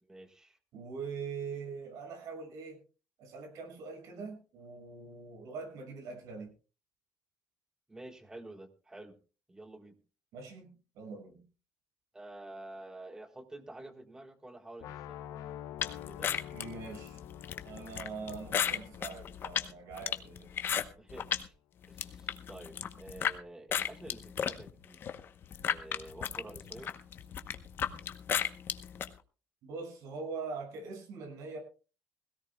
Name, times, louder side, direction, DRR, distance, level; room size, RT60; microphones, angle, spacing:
voice 1, 0.0-0.6 7.9-9.1 9.5-10.0 12.1-15.2 16.1-16.5 20.9-21.5 21.9-25.0 25.6-26.9, right 2 dB, 10° right, 6 dB, 1.5 m, -49 dB
voice 2, 0.7-2.8 3.2-6.5 10.3-11.4 16.5-17.2 17.6-20.5 29.6-31.6, right 4 dB, 70° right, 3 dB, 6.5 m, -43 dB
sound 1, 14.8-20.7, left 11 dB, 75° left, 0.7 m, -48 dB
sound 2, 15.8-21.5 21.8-23.4 23.7-29.1, left 8 dB, 40° left, 0.9 m, -34 dB
21.0 x 17.0 x 2.3 m, 0.35 s
cardioid pair, 170°, 6 cm